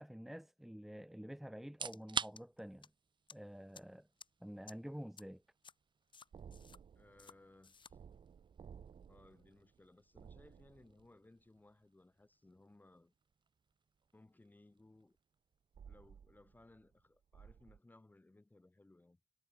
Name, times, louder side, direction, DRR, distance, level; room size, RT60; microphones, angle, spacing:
voice 1, 0.0-2.9 3.3-4.1 4.4-5.4, equal, 5° right, 1.0 m, -49 dB
sound 1, 1.6-16.5, right 6 dB, 55° right, 1.2 m, -51 dB
sound 2, 1.9-2.0 2.4-2.9 3.3-3.4 3.7-3.8 4.2-4.3 4.7-4.8 5.2-5.3 5.6-5.7 6.1-6.8 7.2-7.3 7.6-7.9, left 5 dB, 55° left, 4.1 m, -56 dB
sound 3, 6.3-11.4 15.7-17.0 17.3-17.8, right 7 dB, 85° right, 3.3 m, -57 dB
voice 2, 6.9-8.0 9.1-13.1 14.1-15.2 15.9-19.2, left 2 dB, 20° left, 2.8 m, -64 dB
wide cardioid pair, 140°, 10 cm